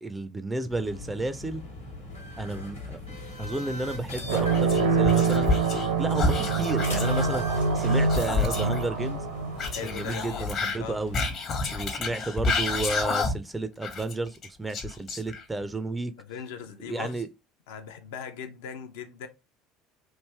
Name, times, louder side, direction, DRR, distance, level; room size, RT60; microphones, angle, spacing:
voice 1, 0.0-1.6 2.4-9.2 9.8-11.2 11.7-16.1 16.8-17.3, right 2 dB, 15° right, 0.4 m, -32 dB
sound 1, 0.7-11.3, left 2 dB, 90° left, 1.0 m, -40 dB
sound 2, 4.2-10.4, right 4 dB, 80° right, 0.7 m, -25 dB
Whispering, 4.3-5.9 6.1-8.8 9.6-13.5 13.8-15.6, left 4 dB, 45° left, 0.8 m, -30 dB
voice 2, 9.7-10.5 10.8-11.0 16.2-17.2 17.7-19.3, left 7 dB, 65° left, 0.5 m, -39 dB
3.1 x 2.6 x 3.2 m
figure-of-eight pair, 65°, 0 cm